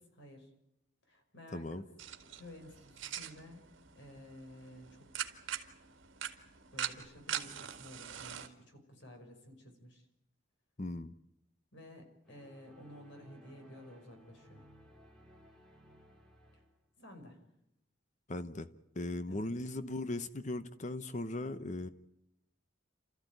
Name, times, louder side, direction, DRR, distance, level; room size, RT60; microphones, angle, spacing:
voice 1, 0.1-0.5 1.1-1.9 2.2-3.7 3.9-5.3 6.7-10.1 11.7-14.7 16.5-16.6 17.0-17.4 19.3-19.5, left 1 dB, 65° left, 5 dB, 5.7 m, -53 dB
voice 2, 1.5-1.8 10.8-11.1 18.3-18.7 19.0-21.9, left 2 dB, 40° left, 12 dB, 0.9 m, -38 dB
sound 1, 2.0-8.5, right 9 dB, 80° right, 2.1 m, -43 dB
sound 2, 12.3-16.9, equal, 5° left, 3.1 m, -60 dB
29.0 x 14.5 x 9.3 m, 0.85 s
head